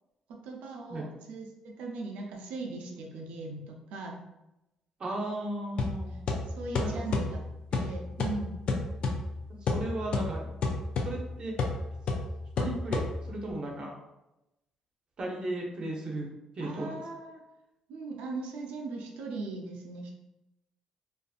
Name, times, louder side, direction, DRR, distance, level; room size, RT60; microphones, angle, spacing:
voice 1, 0.3-4.2 6.4-7.4 7.7-8.6 16.6-17.4 17.9-20.1, right 3 dB, 85° right, 1 dB, 0.5 m, -39 dB
voice 2, 5.0-6.3 6.8-6.9 9.6-10.5 11.0-11.6 12.6-13.9 15.2-16.3 16.5-17.0, right 1 dB, 50° right, -1 dB, 0.7 m, -35 dB
sound 1, 5.8-13.5, left 3 dB, 65° left, 0.4 m, -32 dB
2.5 x 2.4 x 2.4 m, 0.93 s
supercardioid pair, 75°, 2 cm